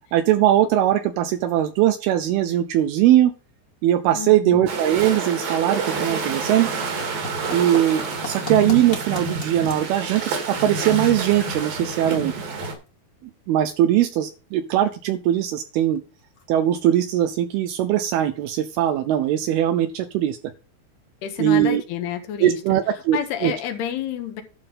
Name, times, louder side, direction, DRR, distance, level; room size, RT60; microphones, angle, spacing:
voice 1, 0.1-3.3 3.8-6.7 7.5-12.3 13.5-16.0 16.5-20.4 21.4-21.8 22.4-23.2 23.4-23.5, right 12 dB, 80° right, 10 dB, 2.3 m, -20 dB
voice 2, 4.2-4.7 21.2-22.6 22.9-24.4, left 9 dB, 75° left, 6 dB, 3.1 m, -29 dB
sound 1, 4.7-12.8, right 4 dB, 60° right, 3.6 m, -28 dB
sound 2, 6.2-20.5, left 4 dB, 35° left, 1.6 m, -45 dB
11.5 x 5.3 x 5.5 m, 0.34 s
omnidirectional pair, 4.9 m